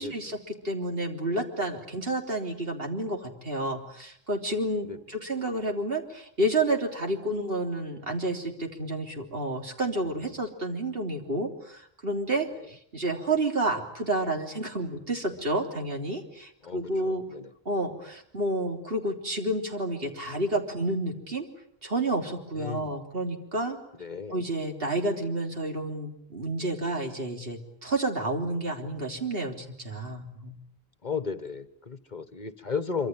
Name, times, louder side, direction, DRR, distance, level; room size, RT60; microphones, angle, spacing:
voice 1, 0.0-17.2 17.7-21.5 21.8-23.8 24.3-30.6, right 1 dB, 70° right, 3 dB, 3.7 m, -30 dB
voice 2, 16.6-17.5 22.5-22.9 24.0-24.4 31.0-33.1, left 5 dB, 45° left, 12 dB, 1.4 m, -34 dB
26.0 x 25.0 x 9.1 m, 0.70 s
omnidirectional pair, 1.0 m